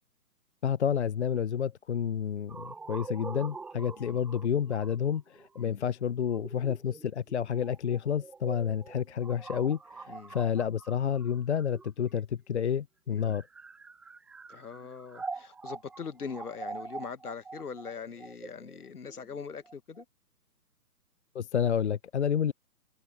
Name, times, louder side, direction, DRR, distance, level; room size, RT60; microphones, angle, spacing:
voice 1, 0.6-13.4 21.3-22.5, left 8 dB, 45° left, 0.7 m, -30 dB
sound 1, 2.5-12.3 13.1-20.0, right 4 dB, ahead, 0.8 m, -45 dB
voice 2, 14.5-20.0, left 6 dB, 70° left, 1.5 m, -42 dB
figure-of-eight pair, 135°, 47 cm